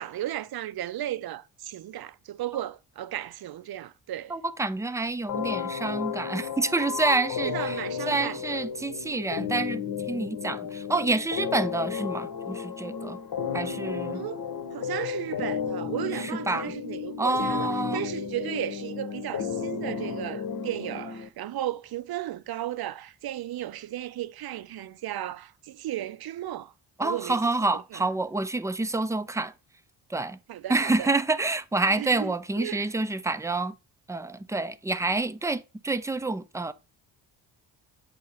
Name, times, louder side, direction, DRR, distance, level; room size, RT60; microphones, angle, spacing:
voice 1, 0.0-4.4 7.4-8.6 14.1-14.4 14.7-26.7 27.0-28.1 30.5-31.1 32.0-32.9, right 13 dB, 55° right, 0.6 m, -35 dB
voice 2, 4.3-7.8 8.1-9.8 10.1-13.2 13.5-14.2 16.2-16.7 17.2-18.0 27.0-29.5 30.1-30.4 30.7-33.7 34.1-36.7, right 3 dB, 5° right, 0.5 m, -28 dB
sound 1, 5.3-21.3, left 7 dB, 50° left, 1.0 m, -33 dB
7.4 x 2.6 x 5.6 m
hypercardioid pair, 45°, 46 cm